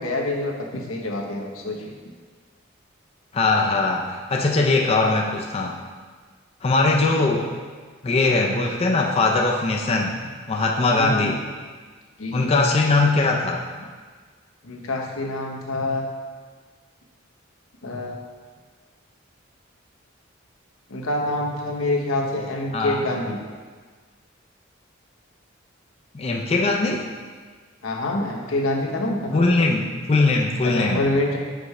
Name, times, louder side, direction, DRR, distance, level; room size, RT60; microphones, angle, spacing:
voice 1, 0.0-1.9 7.3-7.5 11.0-11.3 12.2-12.6 14.6-16.1 17.8-18.2 20.9-23.4 27.8-29.5 30.6-31.4, left 1 dB, 90° left, 1 dB, 0.9 m, -26 dB
voice 2, 3.3-5.8 6.6-7.5 8.0-10.2 10.5-11.4 12.3-13.6 22.7-23.0 26.1-27.1 29.3-31.1, left 3 dB, 30° left, 0 dB, 0.4 m, -21 dB
5.1 x 4.2 x 4.7 m, 1.5 s
head